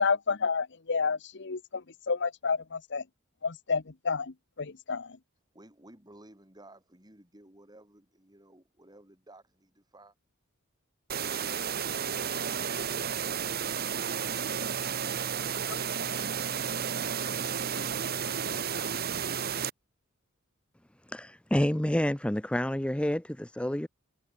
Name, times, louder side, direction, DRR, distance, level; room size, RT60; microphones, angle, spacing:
voice 1, 0.0-3.0 3.4-5.2, left 5 dB, 60° left, 1.0 m, -30 dB
voice 2, 5.5-10.1, right 1 dB, 20° right, 3.9 m, -55 dB
sound 1, 11.1-19.7, right 7 dB, 50° right, 1.2 m, -32 dB
voice 3, 21.1-23.9, equal, 5° left, 0.6 m, -28 dB
head